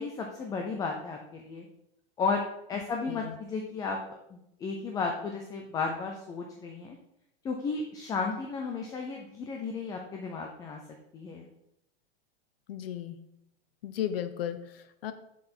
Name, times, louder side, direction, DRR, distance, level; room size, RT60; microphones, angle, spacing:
voice 1, 0.0-1.7 2.2-2.4 2.7-4.0 4.3-7.0 7.4-10.8 11.1-11.5, left 4 dB, 10° left, 2 dB, 0.5 m, -33 dB
voice 2, 12.7-13.2 13.8-15.1, left 10 dB, 70° left, 11 dB, 1.0 m, -35 dB
7.1 x 6.8 x 4.4 m, 0.81 s
supercardioid pair, 160°, 31 cm